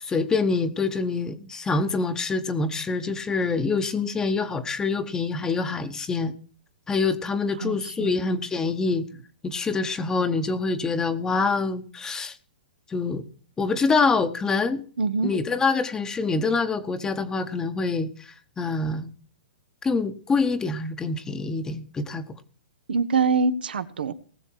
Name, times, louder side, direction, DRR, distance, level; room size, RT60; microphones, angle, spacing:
voice 1, 0.0-6.3 6.9-9.0 9.4-12.4 12.9-13.2 13.6-14.8 15.2-19.1 19.8-22.2, left 4 dB, 10° left, 11 dB, 1.0 m, -25 dB
voice 2, 7.6-8.2 15.0-15.3 22.9-24.1, right 4 dB, 80° right, 11 dB, 1.1 m, -24 dB
19.0 x 6.9 x 4.6 m, 0.42 s
hypercardioid pair, 140°, 5 cm